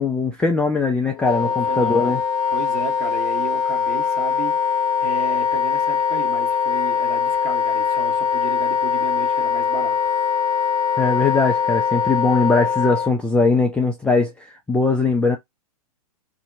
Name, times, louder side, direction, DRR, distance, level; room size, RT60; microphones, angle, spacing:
voice 1, 0.0-2.2 11.0-15.4, left 3 dB, 5° left, 0.3 m, -20 dB
Wind instrument woodwind instrument, 1.2-13.1, left 7 dB, 30° left, 0.8 m, -22 dB
voice 2, 1.4-2.2 2.5-10.0, right 6 dB, 35° right, 1.3 m, -34 dB
2.9 x 2.7 x 2.5 m
figure-of-eight pair, 105°, 19 cm